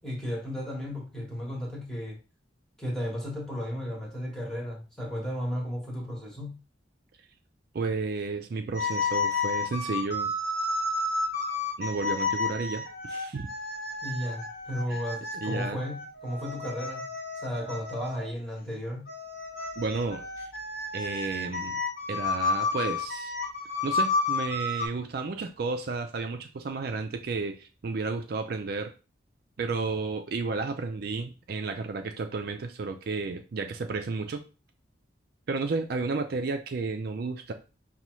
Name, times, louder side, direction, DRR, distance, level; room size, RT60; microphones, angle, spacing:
voice 1, 0.0-2.2 2.8-6.6 14.0-17.1 17.4-19.1, equal, 5° left, 1.0 m, -34 dB
voice 2, 7.7-10.3 11.8-13.5 15.3-15.8 19.8-20.5 20.9-21.8 22.1-23.3 23.8-28.9 29.6-34.4 35.5-37.5, right 4 dB, 50° right, 0.4 m, -32 dB
sound 1, 8.7-18.3 19.1-24.9, left 3 dB, 55° left, 1.0 m, -31 dB
5.4 x 2.3 x 3.0 m
head